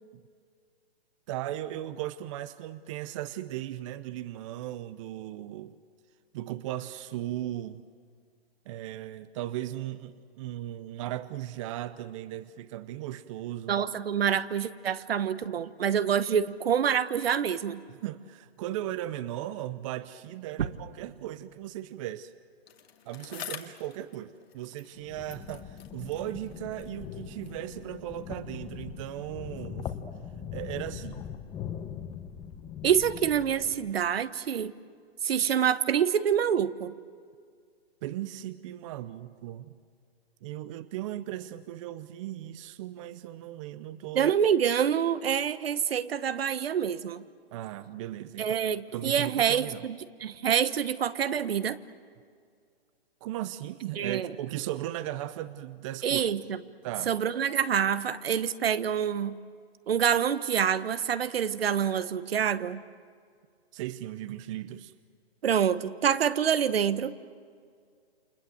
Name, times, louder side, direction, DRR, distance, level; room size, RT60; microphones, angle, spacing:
voice 1, 1.3-5.7 6.3-7.8 8.7-13.8 17.9-22.3 23.1-29.9 30.5-31.2 38.0-39.8 40.4-44.3 47.5-48.6 48.9-49.8 53.2-56.2 56.8-57.1 63.7-64.9, right 13 dB, 30° right, 15 dB, 0.7 m, -37 dB
voice 2, 13.7-17.8 32.8-34.7 35.2-36.9 44.1-47.2 48.4-51.8 54.0-54.3 56.0-56.4 57.1-59.4 59.9-62.8 65.4-67.1, right 8 dB, 65° right, 14 dB, 1.2 m, -26 dB
Bicycle, 22.7-25.0 25.3-27.7 28.4-28.5, left 8 dB, 70° left, 2.3 m, -47 dB
Under Water Breathing, 24.9-34.2, left 8 dB, 15° left, 1.1 m, -41 dB
29.5 x 25.5 x 7.8 m, 2.1 s
hypercardioid pair, 145°, 32 cm